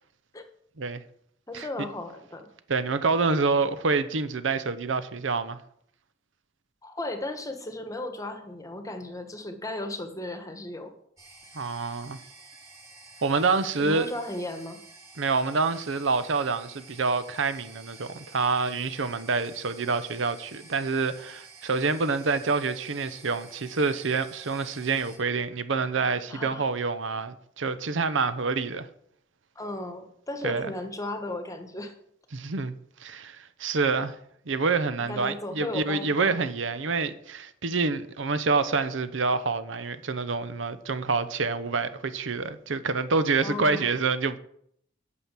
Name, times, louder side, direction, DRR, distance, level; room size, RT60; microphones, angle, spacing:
voice 1, 1.5-2.5 6.8-10.9 13.8-14.8 26.3-26.6 29.5-31.9 35.1-36.4 43.4-43.9, left 1 dB, 15° left, 1.2 m, -35 dB
voice 2, 2.7-5.6 11.5-12.2 13.2-14.1 15.2-28.9 30.4-30.7 32.3-32.7 33.0-34.2 34.5-44.4, right 4 dB, 75° right, 0.8 m, -27 dB
sound 1, 11.2-25.2, right 3 dB, 15° right, 2.0 m, -50 dB
8.6 x 6.3 x 7.4 m
head